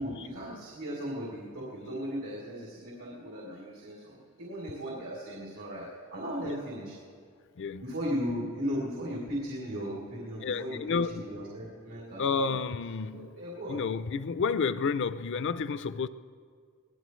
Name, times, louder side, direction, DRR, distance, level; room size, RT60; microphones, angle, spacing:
voice 1, 0.0-6.9 7.8-12.6 13.1-13.8, equal, 80° right, 3.2 m, -37 dB
voice 2, 10.4-11.1 12.2-13.3 13.7-16.1, left 5 dB, 55° left, 0.5 m, -30 dB
23.0 x 18.5 x 3.2 m
head